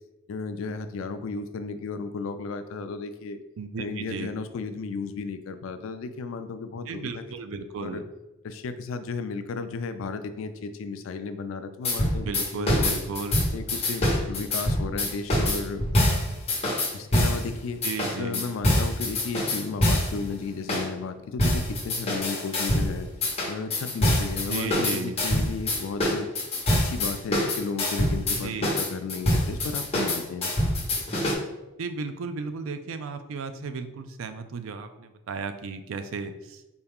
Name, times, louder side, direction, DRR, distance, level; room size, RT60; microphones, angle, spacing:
voice 1, 0.3-3.4 3.8-7.2 7.8-8.0 8.4-12.9 13.5-15.8 16.9-17.8 18.2-23.1 23.5-26.3 26.7-30.5, left 4 dB, 65° left, 10 dB, 0.3 m, -34 dB
voice 2, 3.6-4.3 6.9-8.1 12.2-13.4 17.8-18.4 24.5-25.2 28.4-28.9 31.8-36.8, right 4 dB, 70° right, 9 dB, 0.4 m, -34 dB
sound 1, 11.8-17.4 17.8-20.2 20.7-20.9 21.4-22.9 23.2-31.3, left 1 dB, 30° left, 1.0 m, -25 dB
4.3 x 2.3 x 3.5 m, 0.98 s
head